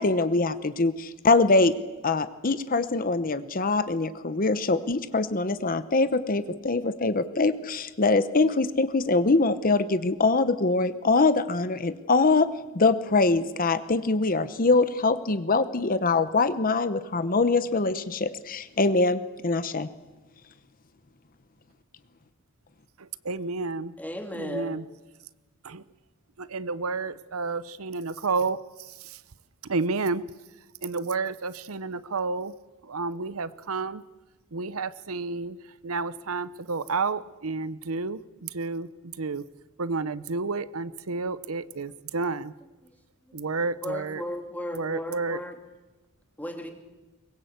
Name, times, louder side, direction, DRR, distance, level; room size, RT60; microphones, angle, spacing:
voice 1, 0.0-1.7 2.0-12.5 12.7-19.9, left 3 dB, 40° left, 13 dB, 0.9 m, -23 dB
voice 2, 23.0-23.9 24.3-24.9 25.6-25.8 26.4-29.2 29.6-30.2 30.8-32.5 32.8-34.0 34.5-35.6 35.8-39.4 39.8-42.5 43.3-44.2 44.7-45.4, right 4 dB, 75° right, 16 dB, 0.8 m, -31 dB
voice 3, 24.0-24.8 43.3-43.4 43.8-45.5 46.4-46.7, left 1 dB, 5° left, 5 dB, 2.7 m, -35 dB
23.5 x 21.0 x 8.1 m, 1.1 s
head